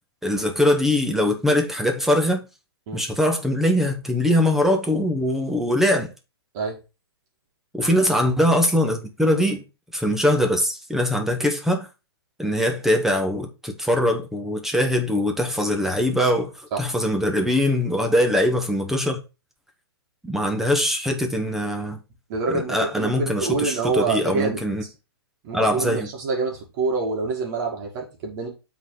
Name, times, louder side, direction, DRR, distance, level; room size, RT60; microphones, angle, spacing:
voice 1, 0.2-2.4 2.9-6.1 7.7-9.6 9.9-11.9 12.4-16.5 16.8-19.2 20.2-22.0 22.7-24.8 25.5-26.1, left 1 dB, 5° right, 1.0 m, -22 dB
voice 2, 22.3-24.9 25.4-28.5, right 4 dB, 45° right, 2.2 m, -26 dB
7.1 x 4.1 x 4.9 m
hypercardioid pair, 135°, 13 cm